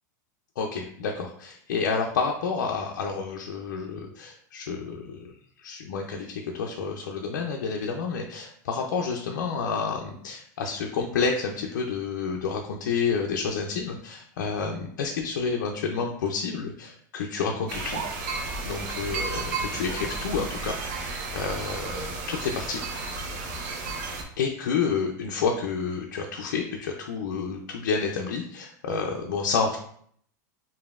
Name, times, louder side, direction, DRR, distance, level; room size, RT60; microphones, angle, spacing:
voice 1, 0.6-5.3 5.6-18.0 18.6-22.8 24.4-29.8, left 5 dB, 85° left, 1 dB, 0.5 m, -29 dB
sound 1, 17.7-24.2, right 3 dB, 70° right, 0.8 m, -33 dB
5.0 x 2.6 x 2.4 m, 0.63 s
supercardioid pair, 125°, 10 cm